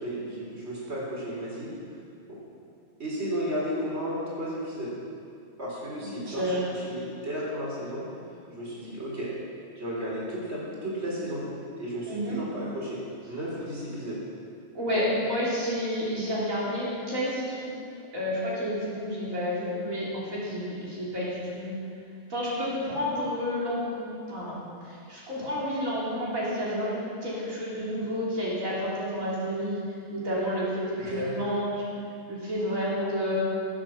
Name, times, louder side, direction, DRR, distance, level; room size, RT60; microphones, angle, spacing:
voice 1, 0.0-1.7 2.3-2.4 3.0-5.0 5.6-8.1 8.5-9.3 9.8-11.5 11.8-13.0 13.3-14.2 31.1-31.3, equal, 55° right, -6 dB, 4.0 m, -33 dB
voice 2, 6.0-6.6 12.1-12.4 14.7-17.7 18.1-21.7 22.3-24.6 24.8-29.8 30.1-31.8 32.3-33.4, equal, 85° right, -8 dB, 3.6 m, -30 dB
15.5 x 8.7 x 7.4 m, 2.5 s
omnidirectional pair, 1.4 m